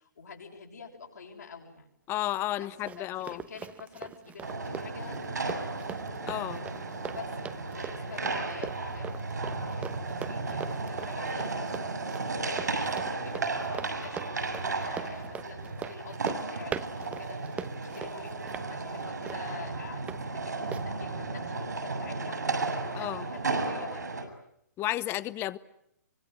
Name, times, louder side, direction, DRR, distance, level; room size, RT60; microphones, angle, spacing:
voice 1, 0.0-1.8 2.6-2.7 3.0-5.6 7.1-7.4 7.7-12.0 12.4-22.4 22.8-24.2, left 5 dB, 70° left, -1 dB, 6.9 m, -47 dB
voice 2, 2.1-3.4 6.2-6.6 22.9-23.2 24.8-25.6, left 15 dB, 25° left, 17 dB, 1.1 m, -32 dB
Run, 2.4-20.2 20.7-20.9, right 7 dB, 15° right, 1.1 m, -42 dB
sound 1, 4.4-24.2, right 3 dB, 75° right, 6.9 m, -34 dB
26.0 x 24.5 x 9.2 m, 0.76 s
figure-of-eight pair, 125°, 10 cm